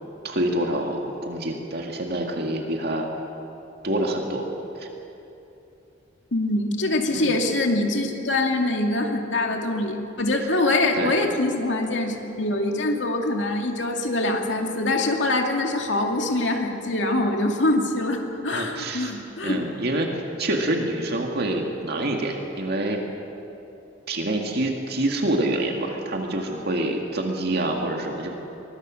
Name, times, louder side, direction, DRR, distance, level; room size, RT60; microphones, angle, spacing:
voice 1, 0.2-3.1 3.8-4.5 4.8-4.9 7.1-7.4 11.0-11.2 18.5-19.1 19.4-23.0 24.1-28.4, right 1 dB, 60° right, 2 dB, 2.1 m, -26 dB
voice 2, 6.3-19.6, left 2 dB, 70° left, 2 dB, 2.4 m, -24 dB
23.5 x 21.0 x 6.4 m, 3.0 s
head